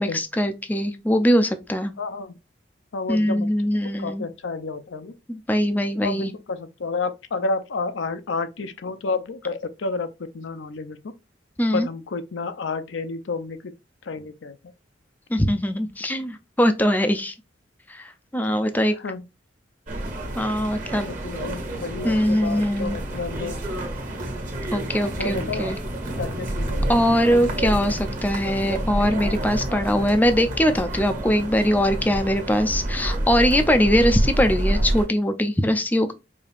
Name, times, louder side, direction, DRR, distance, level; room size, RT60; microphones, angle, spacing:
voice 1, 0.0-1.9 3.1-4.2 5.3-6.3 11.6-11.9 15.3-17.3 17.9-18.9 20.4-21.1 22.0-23.0 24.7-25.8 26.9-36.1, equal, 10° left, 0.4 m, -22 dB
voice 2, 2.0-2.3 2.9-3.5 4.0-5.1 6.0-11.1 11.7-13.7 14.1-14.6 19.0-19.2 21.1-23.6 25.2-25.7 26.2-27.0, left 3 dB, 85° left, 0.5 m, -30 dB
sound 1, 19.9-35.1, right 1 dB, 45° right, 1.5 m, -28 dB
5.0 x 2.7 x 2.4 m
head